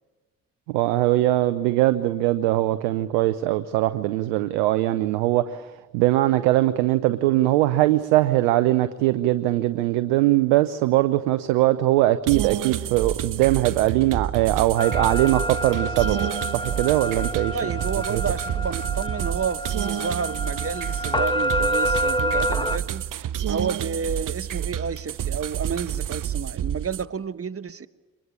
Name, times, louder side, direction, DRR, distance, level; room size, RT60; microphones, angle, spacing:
voice 1, 0.7-5.7 5.9-17.7 18.1-18.2, right 16 dB, 90° right, 0.7 m, -21 dB
sound 1, 12.3-27.1, right 10 dB, 60° right, 0.8 m, -29 dB
sound 2, 14.8-22.8, equal, 15° left, 1.8 m, -28 dB
voice 2, 17.5-23.0 23.5-27.9, right 6 dB, 40° right, 1.3 m, -30 dB
24.0 x 20.5 x 8.6 m
hypercardioid pair, 40°, 37 cm